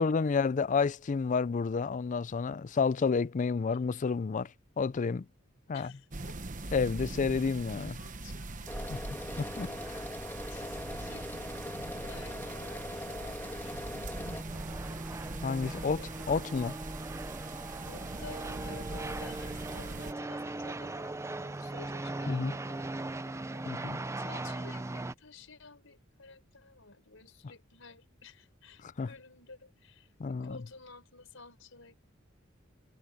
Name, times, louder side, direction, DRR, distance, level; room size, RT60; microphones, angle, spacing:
voice 1, 0.0-4.5 4.8-5.3 5.7-5.9 6.7-8.0 8.9-9.0 9.4-9.7 15.4-16.0 16.3-16.7 22.3-22.5 23.7-24.0 28.8-29.1 30.2-30.6, left 5 dB, 40° left, 0.4 m, -30 dB
voice 2, 5.7-6.4 8.0-10.2 10.5-15.3 15.6-16.5 17.8-21.2 21.4-32.0, left 3 dB, 75° left, 5.2 m, -53 dB
sound 1, 6.1-20.1, right 2 dB, 40° right, 1.1 m, -42 dB
sound 2, 8.7-14.4, left 1 dB, 10° left, 2.6 m, -41 dB
sound 3, 14.1-25.1, right 2 dB, 15° right, 0.5 m, -39 dB
head